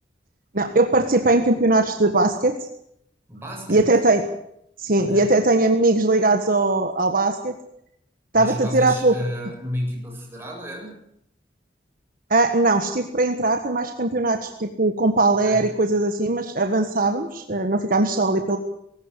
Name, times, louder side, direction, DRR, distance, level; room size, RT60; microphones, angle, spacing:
voice 1, 0.5-2.5 3.7-4.2 4.8-7.5 8.3-9.2 12.3-18.6, right 2 dB, 50° right, 6 dB, 1.5 m, -20 dB
voice 2, 3.3-3.9 5.0-5.3 8.3-11.0 15.4-15.8, equal, 15° right, -1 dB, 7.7 m, -32 dB
19.5 x 17.5 x 8.3 m, 0.75 s
head